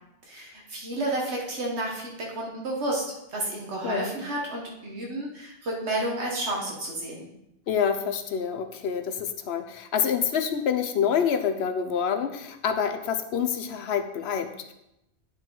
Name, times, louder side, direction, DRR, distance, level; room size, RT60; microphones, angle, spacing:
voice 1, 0.3-3.0 3.3-7.3, right 1 dB, 75° right, -2 dB, 1.5 m, -31 dB
voice 2, 7.7-14.7, left 7 dB, 70° left, 8 dB, 0.9 m, -27 dB
9.5 x 4.5 x 3.8 m, 0.87 s
omnidirectional pair, 1.2 m